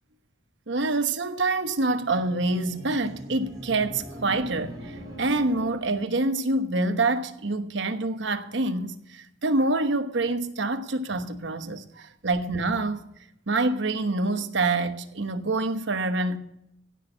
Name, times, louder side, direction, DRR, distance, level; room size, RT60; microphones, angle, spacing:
voice 1, 0.7-13.1 13.5-16.4, right 2 dB, 70° right, 1.1 m, -26 dB
sound 1, 1.6-6.2, right 1 dB, 20° right, 4.9 m, -41 dB
16.5 x 6.3 x 6.7 m
head